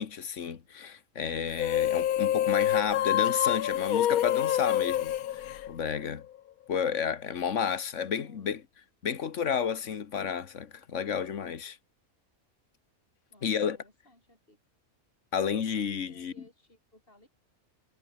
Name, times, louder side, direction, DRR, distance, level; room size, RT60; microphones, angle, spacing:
voice 1, 0.0-6.2 6.7-8.6 9.0-11.8 13.4-13.8 15.3-16.3, left 7 dB, 55° left, 1.6 m, -31 dB
sound 1, 1.5-6.2, left 11 dB, 80° left, 1.3 m, -27 dB
voice 2, 13.3-14.6 15.9-17.3, left 1 dB, 40° left, 8.4 m, -61 dB
omnidirectional pair, 1.5 m